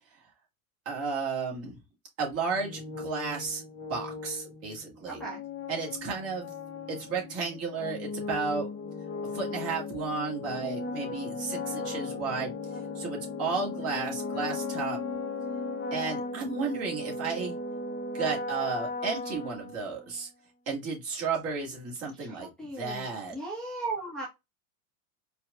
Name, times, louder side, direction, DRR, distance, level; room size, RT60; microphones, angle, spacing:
voice 1, 0.9-1.8 2.2-3.6 3.9-5.2 5.7-6.5 6.9-8.7 9.3-12.5 13.0-15.0 15.9-17.5 18.1-20.3 20.7-22.5 22.7-23.4, right 5 dB, 35° right, 1.7 m, -33 dB
sound 1, 2.5-20.1, left 3 dB, 25° left, 0.9 m, -37 dB
voice 2, 5.0-5.4 22.2-24.3, right 3 dB, ahead, 1.0 m, -37 dB
4.6 x 2.5 x 2.3 m
hypercardioid pair, 115°, 42 cm